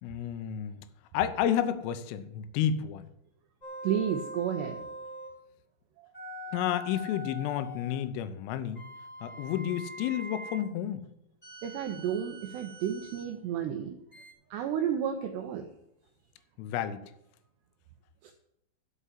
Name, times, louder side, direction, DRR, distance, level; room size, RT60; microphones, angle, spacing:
voice 1, 0.0-0.9 1.1-3.1 6.5-8.8 9.2-11.1 16.6-17.0, left 10 dB, 85° left, 12 dB, 3.4 m, -31 dB
sound 1, 3.6-5.4 6.1-8.0 8.7-10.7 11.4-13.3 14.1-14.3, equal, 10° left, 3.4 m, -43 dB
voice 2, 3.8-4.8 6.0-6.1 11.6-14.0 14.5-15.7 18.2-18.3, right 9 dB, 80° right, 5 dB, 2.5 m, -32 dB
11.0 x 6.1 x 8.4 m, 0.79 s
omnidirectional pair, 5.7 m